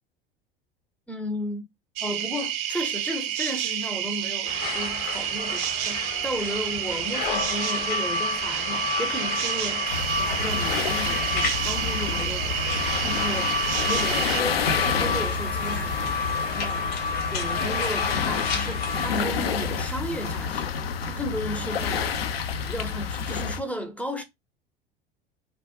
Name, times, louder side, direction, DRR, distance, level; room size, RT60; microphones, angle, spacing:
voice 1, 1.1-1.6 2.0-13.6 13.9-17.0 17.3-20.8 21.0-22.2 22.7-24.2, equal, 5° left, 0.4 m, -34 dB
sound 1, 2.0-14.4, right 11 dB, 45° right, 0.5 m, -29 dB
sound 2, 4.4-19.2, left 4 dB, 55° left, 1.0 m, -30 dB
sound 3, 9.9-23.6, left 6 dB, 75° left, 0.4 m, -29 dB
2.1 x 2.0 x 2.9 m
figure-of-eight pair, 75°, 30 cm